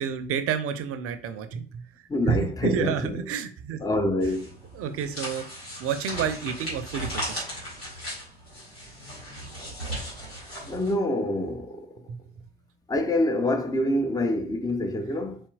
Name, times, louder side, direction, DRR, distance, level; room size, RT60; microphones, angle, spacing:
voice 1, 0.0-1.8 2.3-3.8 4.8-5.4 5.8-7.4 12.1-12.2, right 7 dB, 50° right, 0.7 m, -29 dB
voice 2, 2.1-3.3 3.8-4.6 10.7-11.9 12.9-15.4, left 1 dB, 10° left, 0.6 m, -26 dB
sound 1, 4.2-10.9, equal, 90° left, 1.8 m, -37 dB
4.4 x 4.2 x 2.3 m
figure-of-eight pair, 50°, 30 cm